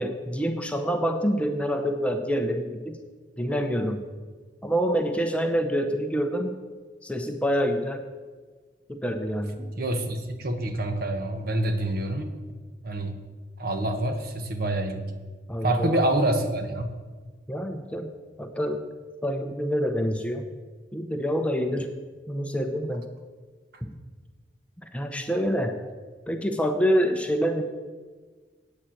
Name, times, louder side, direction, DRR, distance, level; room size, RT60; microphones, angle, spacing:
voice 1, 0.0-3.0 3.4-4.0 4.6-6.5 7.0-8.0 8.9-9.7 15.5-16.0 17.5-18.1 18.4-18.8 19.2-20.5 20.9-21.9 22.3-23.0 23.8-24.0 24.8-25.7 26.3-27.6, equal, 5° left, 5 dB, 0.6 m, -26 dB
voice 2, 9.8-12.3 12.8-13.2 13.6-15.1 15.6-16.9, right 1 dB, 50° right, 6 dB, 1.1 m, -26 dB
8.8 x 7.3 x 7.6 m, 1.4 s
head